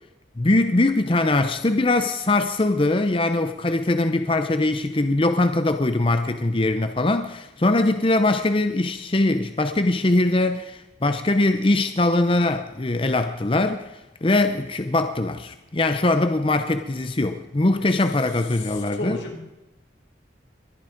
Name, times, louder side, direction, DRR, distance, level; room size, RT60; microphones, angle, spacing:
voice 1, 0.4-13.9 14.2-19.2, left 2 dB, 30° left, 8 dB, 0.7 m, -22 dB
voice 2, 18.5-19.5, left 1 dB, 85° left, 2 dB, 3.9 m, -33 dB
21.5 x 12.0 x 5.1 m, 1.0 s
head